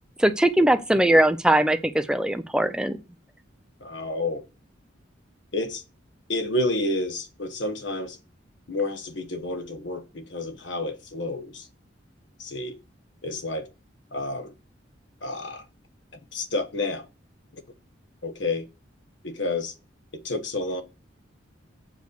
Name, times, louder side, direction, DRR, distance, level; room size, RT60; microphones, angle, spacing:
voice 1, 0.2-3.0, right 1 dB, 5° right, 0.4 m, -20 dB
voice 2, 3.8-4.4 5.5-5.8 6.3-8.2 8.7-11.7 12.4-12.8 13.2-13.7 14.1-14.5 15.2-15.6 16.3-17.1 18.2-18.7 19.2-19.7 20.2-20.8, left 2 dB, 70° left, 1.2 m, -29 dB
8.0 x 5.1 x 6.5 m
head